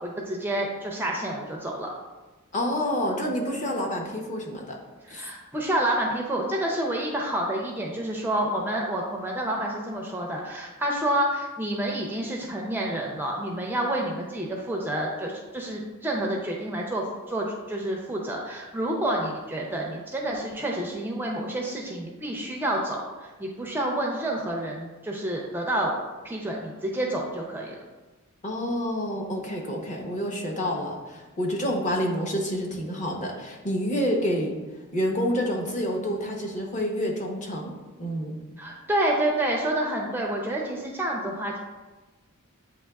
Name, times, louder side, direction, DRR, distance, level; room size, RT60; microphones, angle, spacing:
voice 1, 0.0-1.9 5.0-25.9 26.2-27.7 38.6-41.6, right 1 dB, 10° right, -1 dB, 0.4 m, -29 dB
voice 2, 2.5-4.8 5.1-5.2 28.4-34.5 34.9-37.7 38.0-38.4, equal, 35° left, -1 dB, 0.8 m, -28 dB
8.1 x 2.8 x 2.3 m, 1.2 s
head